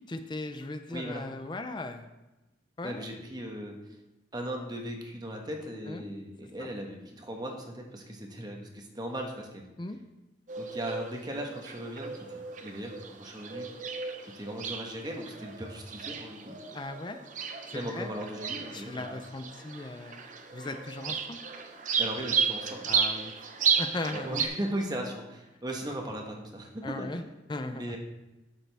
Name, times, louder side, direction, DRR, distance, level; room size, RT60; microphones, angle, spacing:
voice 1, 0.1-2.1 2.8-3.1 5.9-6.0 6.6-6.7 9.8-10.0 16.7-17.2 17.7-18.1 18.7-20.3 20.5-21.4 22.9-23.5 23.8-24.5 26.8-27.2 27.5-28.0, left 2 dB, 25° left, 7 dB, 0.5 m, -38 dB
voice 2, 0.9-1.2 2.8-3.8 4.3-9.7 10.6-12.9 13.2-13.7 14.4-16.6 17.7-19.1 22.0-22.9 24.1-27.1 27.7-28.0, right 1 dB, 20° right, 2 dB, 1.1 m, -37 dB
sound 1, 10.5-24.5, right 6 dB, 40° right, 0.7 m, -34 dB
12.0 x 6.7 x 3.4 m, 1.0 s
head